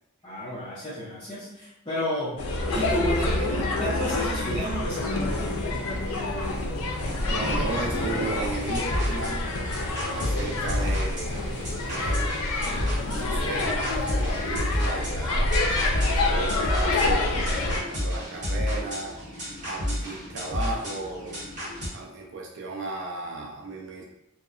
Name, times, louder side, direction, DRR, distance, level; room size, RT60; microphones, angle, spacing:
voice 1, 0.2-2.4 2.7-5.5 10.4-10.8, equal, 20° left, -10 dB, 0.5 m, -31 dB
sound 1, 2.4-17.8, left 2 dB, 80° left, 0.4 m, -27 dB
Thunder, 4.9-14.9, equal, 85° right, 0.9 m, -42 dB
voice 2, 7.3-9.5 10.1-12.3 13.1-15.6 16.1-19.1 19.6-21.4 21.9-24.0, right 3 dB, 55° right, -1 dB, 0.4 m, -35 dB
sound 2, 8.5-21.9, left 1 dB, 35° right, 0.9 m, -31 dB
2.8 x 2.0 x 2.4 m, 0.89 s
head